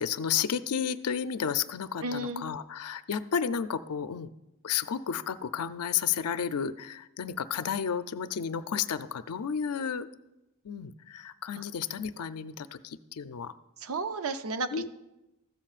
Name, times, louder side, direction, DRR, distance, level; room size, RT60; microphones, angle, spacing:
voice 1, 0.0-4.3 4.6-10.1 10.6-13.5 14.7-14.9, left 7 dB, 90° left, 13 dB, 0.5 m, -32 dB
voice 2, 2.0-2.4 11.5-11.6 13.8-14.7, right 3 dB, 70° right, 10 dB, 0.6 m, -32 dB
14.5 x 13.0 x 2.5 m, 0.97 s
head